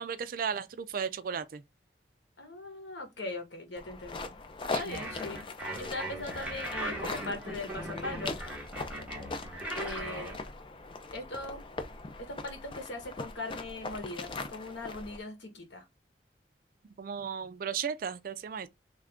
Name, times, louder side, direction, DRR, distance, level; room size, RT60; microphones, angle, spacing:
voice 1, 0.0-1.6 4.7-5.0 17.0-18.7, right 7 dB, 50° right, 0.3 m, -35 dB
voice 2, 2.4-4.4 4.8-5.4 5.8-8.4 9.7-10.4 11.1-11.6 12.2-15.9, left 2 dB, 85° left, 1.2 m, -40 dB
sound 1, 3.8-15.2, left 3 dB, 30° left, 0.4 m, -41 dB
sound 2, 4.9-10.4, right 1 dB, 5° right, 0.9 m, -38 dB
3.2 x 2.5 x 3.5 m
head